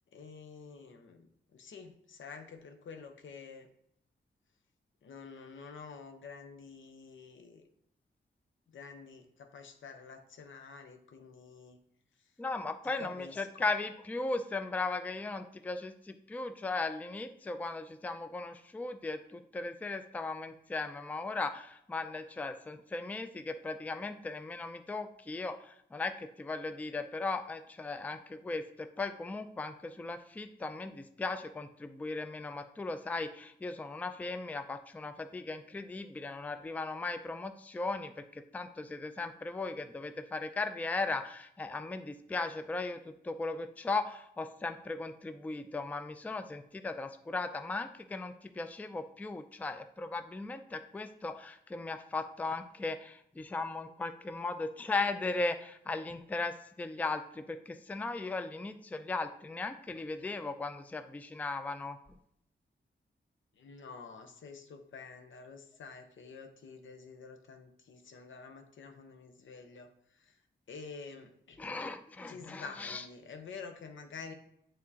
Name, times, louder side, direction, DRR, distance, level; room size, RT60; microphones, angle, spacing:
voice 1, 0.1-1.3 1.5-3.7 5.0-7.6 8.7-11.8 13.0-13.7 63.6-70.3 70.7-71.7 72.3-74.3, left 5 dB, 90° left, 5 dB, 0.9 m, -49 dB
voice 2, 12.4-62.0 71.6-73.0, left 3 dB, 10° left, 9 dB, 0.3 m, -37 dB
9.3 x 3.7 x 2.8 m, 0.72 s
wide cardioid pair, 140°, 20 cm